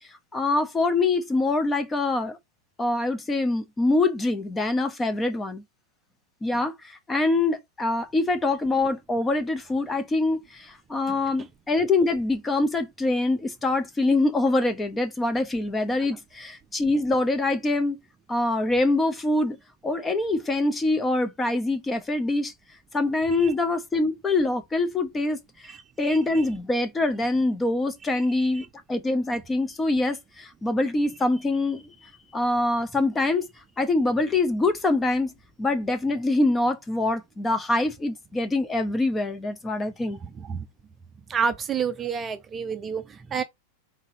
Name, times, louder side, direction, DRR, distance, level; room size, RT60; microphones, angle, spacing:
voice 1, 0.3-2.4 2.8-5.6 6.4-18.0 18.3-19.6 19.8-22.5 22.9-25.7 26.0-31.9 32.3-33.5 33.8-35.3 35.6-40.2, left 2 dB, 15° left, 0.8 m, -24 dB
voice 2, 25.7-26.4 28.1-28.7 40.2-40.7 41.3-43.4, right 6 dB, 20° right, 0.5 m, -30 dB
4.0 x 3.9 x 2.7 m
figure-of-eight pair, 90°, 0 cm